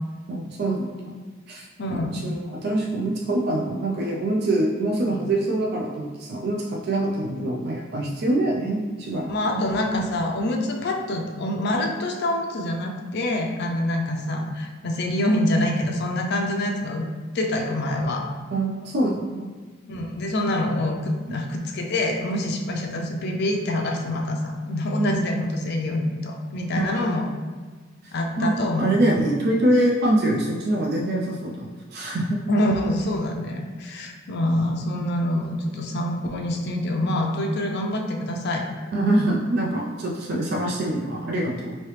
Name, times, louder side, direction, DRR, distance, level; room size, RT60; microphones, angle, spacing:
voice 1, 0.3-1.6 1.9-9.6 18.5-19.5 26.7-27.1 28.0-28.5 28.8-32.4 38.9-41.8, right 1 dB, 55° right, -2 dB, 0.4 m, -25 dB
voice 2, 1.8-2.2 9.3-17.0 17.3-18.2 19.9-27.3 28.1-28.9 32.5-38.6, left 1 dB, 60° left, 2 dB, 0.4 m, -25 dB
3.1 x 2.8 x 3.1 m, 1.4 s
head